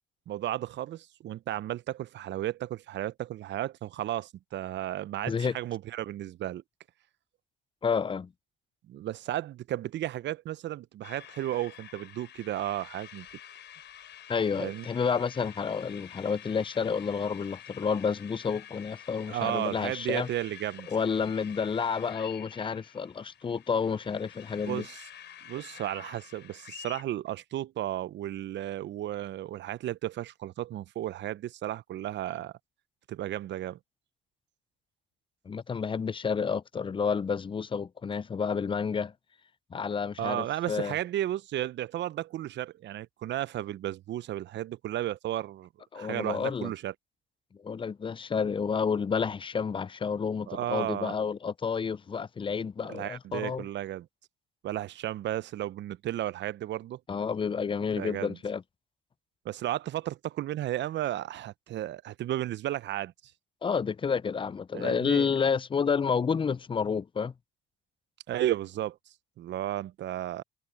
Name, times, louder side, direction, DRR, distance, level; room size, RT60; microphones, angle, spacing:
voice 1, 0.3-6.6 8.9-13.3 14.6-14.9 19.3-20.9 24.7-25.0 25.5-32.5 33.1-33.8 40.2-45.7 45.9-46.9 50.5-51.2 52.9-54.1 54.6-57.0 58.0-58.4 59.4-63.1 64.7-65.3 68.3-69.0 69.4-70.4, right 13 dB, 60° right, 0.8 m, -34 dB
voice 2, 5.3-5.6 7.8-8.3 14.3-20.3 20.9-24.8 35.5-39.1 39.7-40.9 45.9-46.7 47.6-53.6 57.1-58.6 63.6-67.3, left 6 dB, 25° left, 0.5 m, -30 dB
sound 1, 11.0-27.0, left 10 dB, 60° left, 4.2 m, -49 dB
hypercardioid pair, 60°, 21 cm